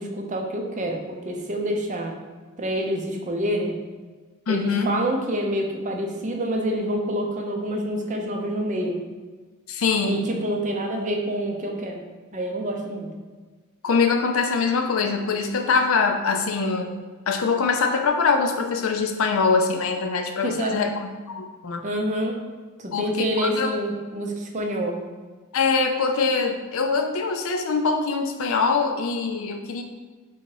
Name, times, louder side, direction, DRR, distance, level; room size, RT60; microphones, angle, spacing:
voice 1, 0.0-2.1 2.6-3.8 4.5-9.0 10.1-12.0 12.3-13.1 20.4-20.8 21.8-22.4 22.8-25.0, equal, 35° right, 1 dB, 0.5 m, -27 dB
voice 2, 4.5-4.9 9.7-10.2 13.8-16.9 17.3-21.1 21.4-21.8 22.9-23.8 25.5-29.8, left 4 dB, 65° left, 5 dB, 0.4 m, -23 dB
3.9 x 2.8 x 4.6 m, 1.4 s
head